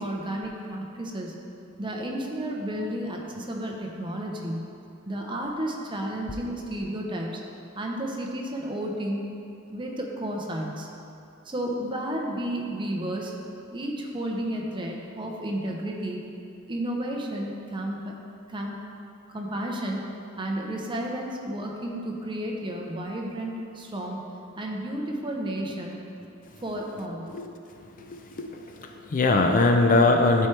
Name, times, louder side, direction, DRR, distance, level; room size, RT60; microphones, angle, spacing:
voice 1, 0.0-1.3 1.8-4.7 5.1-7.4 7.7-9.2 9.7-10.9 11.4-13.3 13.7-16.2 16.7-18.1 18.5-18.8 19.3-20.0 20.4-24.2 24.6-26.0 26.6-27.3, right 1 dB, 25° right, 0 dB, 0.7 m, -32 dB
voice 2, 28.0-30.5, left 2 dB, 40° left, 4 dB, 0.4 m, -22 dB
11.0 x 4.5 x 3.3 m, 2.6 s
head